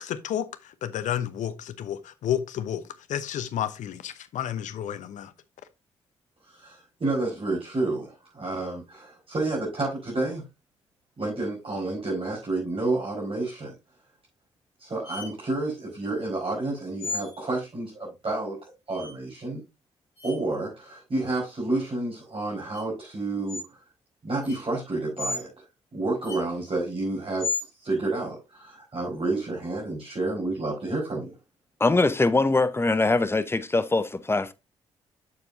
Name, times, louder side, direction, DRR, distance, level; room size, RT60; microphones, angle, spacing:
voice 1, 0.0-2.8 3.1-5.3, left 10 dB, 65° left, 0.8 m, -31 dB
voice 2, 6.5-10.4 11.2-13.7 14.8-19.6 20.2-23.6 24.2-25.5 25.9-27.6 27.8-31.3, right 2 dB, 40° right, 4.6 m, -30 dB
sound 1, 15.0-15.3 17.0-17.5 18.9-19.1 20.2-20.4 21.3-21.4 22.7-22.8 23.5-23.7 24.4-24.6 25.2-25.4 26.2-26.4 27.4-27.6, left 3 dB, 90° left, 3.3 m, -33 dB
voice 3, 31.8-34.5, left 3 dB, 15° left, 0.8 m, -22 dB
8.5 x 7.1 x 2.6 m
hypercardioid pair, 40°, 14 cm